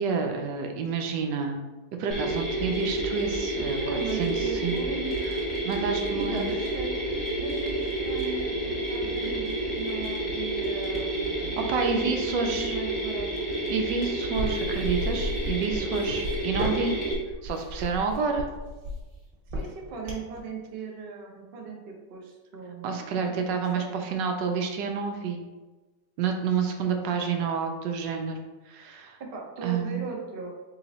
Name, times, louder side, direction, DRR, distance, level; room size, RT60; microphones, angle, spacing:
voice 1, 0.0-1.6 2.0-4.8 5.6-6.5 11.6-12.7 13.7-17.0 17.4-18.5 22.8-25.4 26.2-28.4 28.7-29.2 29.6-30.0, right 5 dB, 75° right, 4 dB, 1.2 m, -29 dB
Mechanisms, 2.1-17.1, right 1 dB, ahead, 1.1 m, -30 dB
voice 2, 3.8-5.1 5.8-7.1 7.4-11.6 12.3-13.3 16.7-17.1 19.5-23.3 23.7-24.3 26.8-27.4 29.3-30.5, right 4 dB, 60° right, -1 dB, 0.6 m, -38 dB
sound 1, 14.3-20.4, equal, 35° right, 1.1 m, -33 dB
4.0 x 2.9 x 3.9 m, 1.2 s
omnidirectional pair, 2.0 m